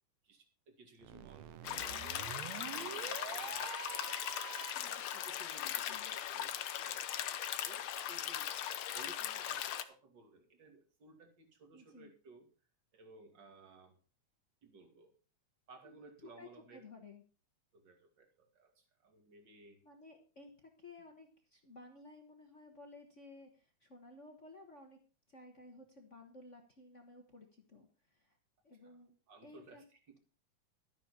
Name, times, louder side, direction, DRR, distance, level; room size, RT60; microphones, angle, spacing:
voice 1, 0.2-4.1 4.7-8.5 8.9-12.5 12.9-14.0 14.6-15.1 15.7-16.8 17.7-19.8 28.8-29.0 29.3-30.2, right 3 dB, 40° right, 3 dB, 2.9 m, -59 dB
sound 1, 1.0-4.9, right 12 dB, 75° right, 1.9 m, -47 dB
sound 2, 1.6-9.8, left 11 dB, 90° left, 1.1 m, -39 dB
voice 2, 5.6-6.1 11.7-12.1 15.8-16.1 16.4-17.2 19.8-25.0 25.3-28.4 28.6-29.1 29.4-29.8, left 2 dB, 50° left, 3 dB, 0.9 m, -56 dB
12.5 x 10.5 x 4.3 m, 0.36 s
omnidirectional pair, 3.5 m